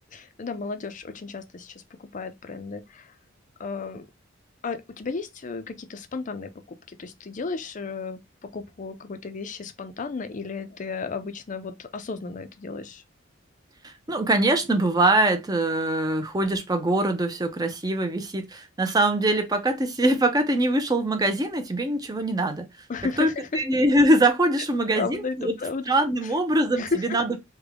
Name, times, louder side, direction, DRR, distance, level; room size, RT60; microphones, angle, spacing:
voice 1, 0.0-3.1 3.6-4.1 4.6-6.5 6.9-13.0 22.9-23.6 24.9-25.9 26.2-26.3 26.8-27.2, left 4 dB, 40° left, 0.4 m, -33 dB
voice 2, 13.8-22.7 23.2-23.3 23.5-25.5 25.9-27.4, right 1 dB, 20° right, 0.6 m, -23 dB
3.4 x 2.2 x 3.5 m
head